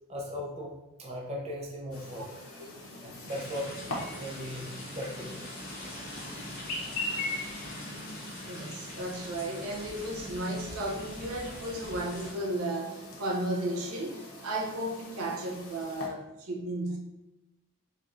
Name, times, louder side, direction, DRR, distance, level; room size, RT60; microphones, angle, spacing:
voice 1, 0.1-2.4 3.0-3.7 4.2-5.5, left 1 dB, 30° right, -3 dB, 0.5 m, -38 dB
Chirp tweet, 1.9-16.1, left 2 dB, 90° left, 0.8 m, -42 dB
sound 1, 3.3-12.3, left 1 dB, 40° left, 1.1 m, -43 dB
voice 2, 8.4-17.0, right 1 dB, 85° right, 0 dB, 0.6 m, -34 dB
4.5 x 2.4 x 2.5 m, 0.99 s
head